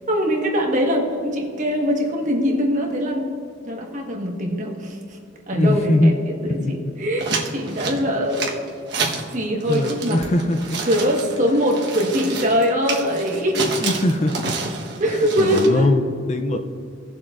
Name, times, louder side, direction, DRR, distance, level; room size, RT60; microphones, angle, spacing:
voice 1, 0.1-3.3 3.6-5.2 5.5-8.5 9.3-10.2 10.8-13.7 15.0-15.9, equal, 40° right, 0 dB, 1.4 m, -22 dB
voice 2, 5.5-6.2 6.4-6.9 9.7-10.8 13.6-14.6 15.1-16.6, left 1 dB, 35° left, 7 dB, 0.5 m, -21 dB
sound 1, 7.2-9.3 9.6-15.7, right 4 dB, 55° right, 1.3 m, -29 dB
18.0 x 7.4 x 2.5 m, 2.5 s
head